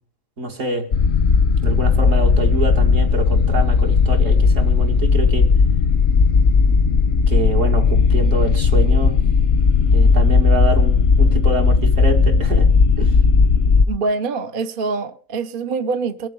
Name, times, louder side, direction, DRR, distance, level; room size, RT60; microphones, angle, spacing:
voice 1, 0.4-0.9 1.6-5.5 7.3-9.2 9.9-12.7 13.0-13.2, right 2 dB, 65° right, 2.5 m, -25 dB
sound 1, 0.9-13.8, left 5 dB, 45° left, 0.8 m, -15 dB
voice 2, 13.9-16.3, right 4 dB, 45° right, 0.8 m, -24 dB
22.5 x 7.6 x 5.2 m
omnidirectional pair, 1.4 m